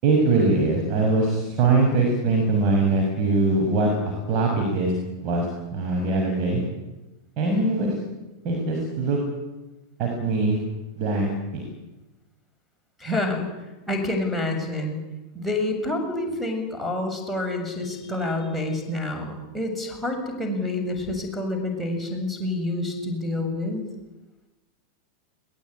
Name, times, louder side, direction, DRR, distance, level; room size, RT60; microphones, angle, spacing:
voice 1, 0.0-4.9 5.2-5.5 5.7-6.6 7.4-7.9 8.4-9.2 10.0-10.6 11.0-11.6, right 3 dB, 40° right, 1 dB, 6.3 m, -22 dB
voice 2, 13.0-13.4 13.9-15.0 15.3-23.8, left 2 dB, 5° left, 1 dB, 7.2 m, -28 dB
22.0 x 19.5 x 9.8 m, 1.0 s
figure-of-eight pair, 90°, 0 cm